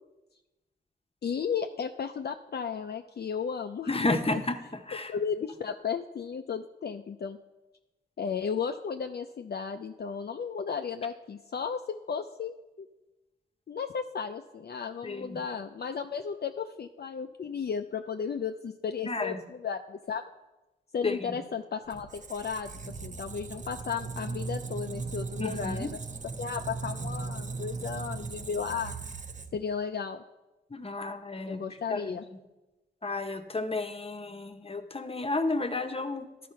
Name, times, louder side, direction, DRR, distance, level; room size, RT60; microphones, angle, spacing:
voice 1, 1.2-4.4 5.1-7.4 8.2-12.9 13.7-20.2 20.9-22.7 23.0-26.0 26.4-28.9 29.5-30.2 31.4-32.2, left 6 dB, 55° left, 6 dB, 0.5 m, -34 dB
voice 2, 3.9-4.6 4.9-5.1 15.0-15.4 19.1-19.4 21.0-21.4 25.4-25.9 30.7-31.6 31.9-32.2 33.0-36.5, left 2 dB, 30° left, 8 dB, 0.9 m, -32 dB
Squeak, 21.9-29.8, right 4 dB, 40° right, 0.6 m, -38 dB
12.0 x 4.2 x 5.7 m, 1.1 s
cardioid pair, 45°, 20 cm